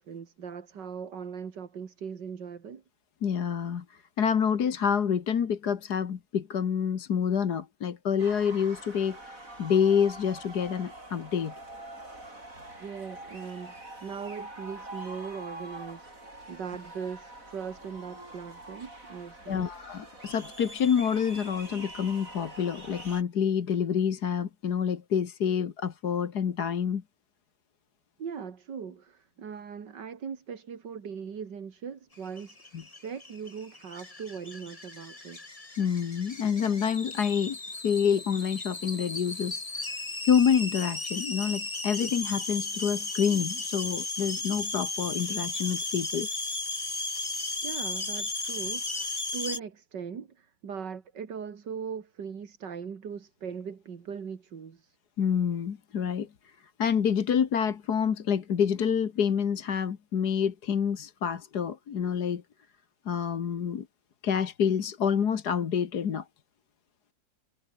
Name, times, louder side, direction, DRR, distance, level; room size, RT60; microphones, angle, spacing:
voice 1, 0.0-2.8 12.8-19.7 28.2-35.4 47.6-55.0, right 6 dB, 65° right, 2.5 m, -40 dB
voice 2, 3.2-11.5 19.5-27.0 32.7-32.8 35.8-37.6 37.8-40.0 40.2-46.3 55.2-62.4 63.1-63.9 64.2-66.3, left 7 dB, 60° left, 2.0 m, -27 dB
sound 1, 8.2-23.2, right 1 dB, 45° right, 8.3 m, -45 dB
sound 2, 32.3-49.6, left 2 dB, 20° left, 2.0 m, -35 dB
omnidirectional pair, 2.0 m